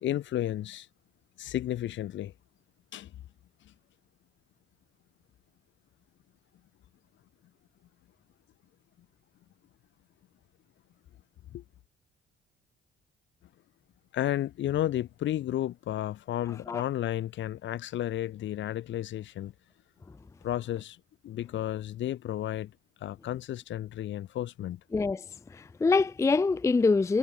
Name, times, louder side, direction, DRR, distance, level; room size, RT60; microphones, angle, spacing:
voice 1, 0.0-0.9 1.4-2.3 2.9-3.1 11.5-11.6 14.1-19.5 20.4-21.0 21.2-22.7 23.0-24.8, left 12 dB, 70° left, 1.0 m, -32 dB
voice 2, 24.9-25.2 25.5-27.2, left 4 dB, 15° left, 0.4 m, -25 dB
cardioid pair, 90°, 20 cm